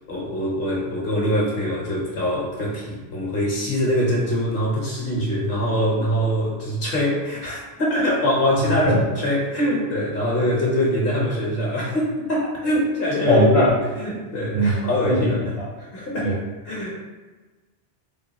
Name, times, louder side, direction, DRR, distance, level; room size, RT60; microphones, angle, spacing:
voice 1, 0.1-15.5 15.8-16.4 16.6-16.9, equal, 55° left, -4 dB, 1.1 m, -23 dB
voice 2, 13.3-13.7 14.5-14.7 15.1-15.2 16.2-16.3, equal, 35° right, -7 dB, 0.8 m, -17 dB
3.6 x 2.3 x 4.1 m, 1.3 s
omnidirectional pair, 1.2 m